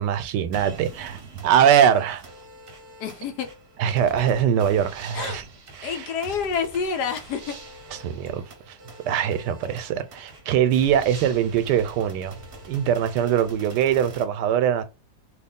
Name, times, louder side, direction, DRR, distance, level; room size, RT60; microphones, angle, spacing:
voice 1, 0.0-2.2 3.8-5.5 5.8-6.1 7.9-8.8 9.0-12.4 12.7-14.8, right 9 dB, 85° right, 1.2 m, -22 dB
sound 1, 0.5-14.2, right 2 dB, 45° right, 0.8 m, -45 dB
voice 2, 3.0-3.5 5.1-5.4 5.8-7.6, left 6 dB, 80° left, 1.3 m, -28 dB
3.3 x 2.4 x 3.6 m
omnidirectional pair, 1.8 m